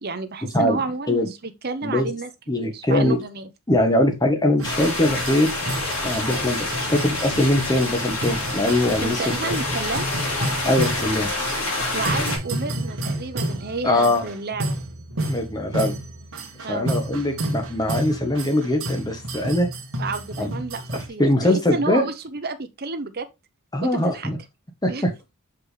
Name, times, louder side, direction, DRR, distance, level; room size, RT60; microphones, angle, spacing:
voice 1, 0.0-2.3 2.6-3.5 9.0-10.1 11.9-14.8 16.6-16.9 20.0-20.8 21.1-23.3 23.8-24.3 24.9-25.0, right 3 dB, 45° right, 0.8 m, -30 dB
voice 2, 2.5-3.2 3.7-5.5 6.0-9.6 10.6-11.3 13.8-14.2 15.3-16.0 16.7-19.7 20.4-20.5 20.9-22.1 23.7-24.4 24.8-25.1, left 1 dB, 15° left, 1.2 m, -22 dB
sound 1, 4.6-12.4, left 2 dB, 65° left, 3.2 m, -27 dB
sound 2, 4.6-21.1, right 1 dB, 65° right, 1.4 m, -31 dB
6.1 x 5.1 x 3.2 m
head